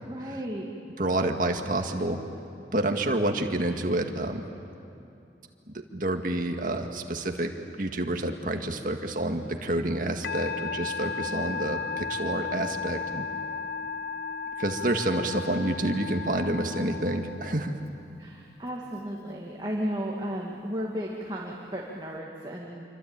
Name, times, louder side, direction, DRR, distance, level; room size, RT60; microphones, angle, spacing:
voice 1, 0.1-0.7 18.2-22.8, equal, 25° right, -2 dB, 2.1 m, -34 dB
voice 2, 1.0-2.2 2.7-4.4 5.9-7.5 7.8-13.2 14.6-17.8, right 1 dB, 50° right, 4 dB, 1.9 m, -28 dB
Musical instrument, 10.2-17.9, left 5 dB, 65° left, 0.7 m, -35 dB
27.0 x 25.0 x 8.9 m, 2.6 s
head